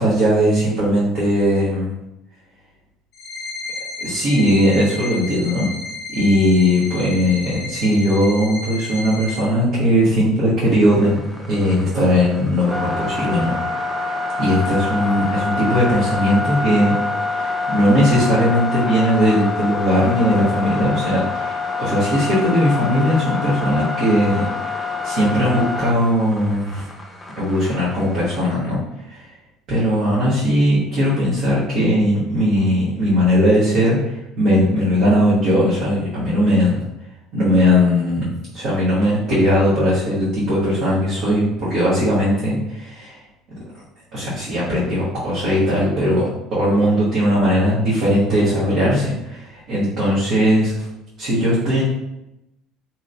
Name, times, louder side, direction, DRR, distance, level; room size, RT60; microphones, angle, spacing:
voice 1, 0.0-1.9 4.0-5.6 6.1-11.2 11.5-13.5 14.4-16.9 17.3-24.4 25.0-26.9 27.4-28.8 29.1-29.3 29.7-36.8 37.3-38.2 38.5-43.2 44.1-50.9 51.2-51.8, equal, 65° right, -8 dB, 1.0 m, -18 dB
sound 1, 3.1-9.4, left 2 dB, 60° left, 0.4 m, -32 dB
sound 2, 10.8-28.4, left 3 dB, 10° left, 0.6 m, -26 dB
3.0 x 2.8 x 2.5 m, 0.91 s
hypercardioid pair, 70°, 0 cm